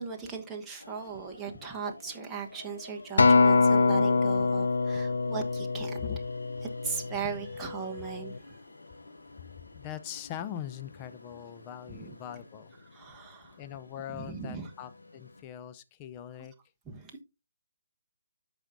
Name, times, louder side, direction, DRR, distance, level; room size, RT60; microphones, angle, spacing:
voice 1, 0.0-6.0 6.8-8.6 11.9-12.1 12.9-13.6 14.1-14.7 16.9-17.2, right 6 dB, 10° right, 1.2 m, -38 dB
sound 1, 0.8-15.4, left 2 dB, 90° left, 2.6 m, -51 dB
Acoustic guitar, 3.2-7.6 8.2-8.4, left 4 dB, 70° left, 0.3 m, -24 dB
voice 2, 9.7-12.7 13.6-16.5, left 10 dB, 25° left, 0.6 m, -41 dB
13.5 x 5.0 x 2.6 m
figure-of-eight pair, 145°, 0 cm